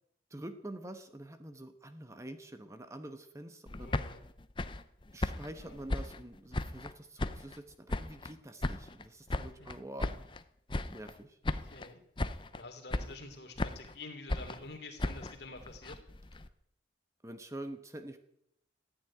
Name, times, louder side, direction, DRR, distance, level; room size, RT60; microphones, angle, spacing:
voice 1, 0.3-3.9 5.1-10.1 10.9-11.4 17.2-18.2, right 1 dB, 15° right, 8 dB, 1.0 m, -46 dB
voice 2, 3.7-4.2 5.6-5.8 9.4-9.7 11.6-12.0 12.5-16.0, left 2 dB, 60° left, 5 dB, 3.1 m, -48 dB
sound 1, 3.7-6.9 7.2-8.3 8.6-10.4 10.7-11.2 11.4-11.9 12.2-12.6 12.9-14.0 14.3-16.5, left 2 dB, 25° left, 0.7 m, -36 dB
14.5 x 9.7 x 10.0 m, 0.77 s
head